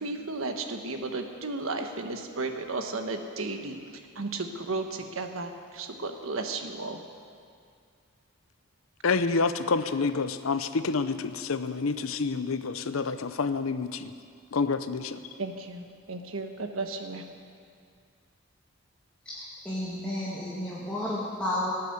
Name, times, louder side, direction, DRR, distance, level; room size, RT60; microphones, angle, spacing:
voice 1, 0.0-7.0 15.4-17.3, right 3 dB, 80° right, 5 dB, 1.3 m, -34 dB
voice 2, 9.0-14.1 14.5-15.2, left 4 dB, 85° left, 11 dB, 0.7 m, -28 dB
voice 3, 19.3-21.7, left 1 dB, 5° left, -9 dB, 2.3 m, -32 dB
18.5 x 8.4 x 8.0 m, 2.3 s
head